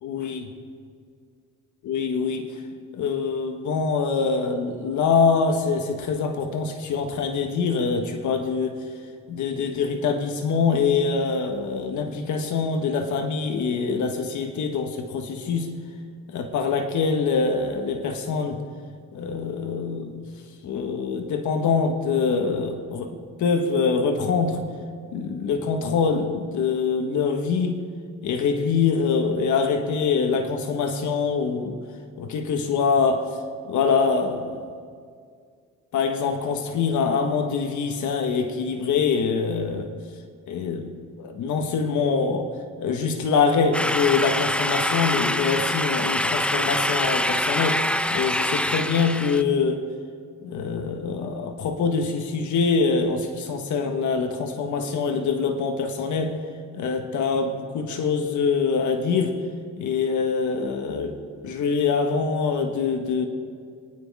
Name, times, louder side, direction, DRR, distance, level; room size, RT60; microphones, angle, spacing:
voice 1, 0.0-0.5 1.8-2.5 2.9-8.8 9.3-15.7 16.3-18.6 19.1-20.3 20.6-24.6 25.1-27.8 28.2-31.8 32.2-33.3 33.6-34.6 35.9-39.9 40.5-40.9 41.2-42.5 42.8-49.8 50.4-56.4 56.7-59.4 59.8-61.1 61.4-63.3, left 5 dB, 75° left, 5 dB, 1.4 m, -24 dB
sound 1, 43.7-49.4, left 1 dB, 5° left, 0.5 m, -25 dB
26.5 x 9.6 x 3.6 m, 2.1 s
cardioid pair, 90°, 30 cm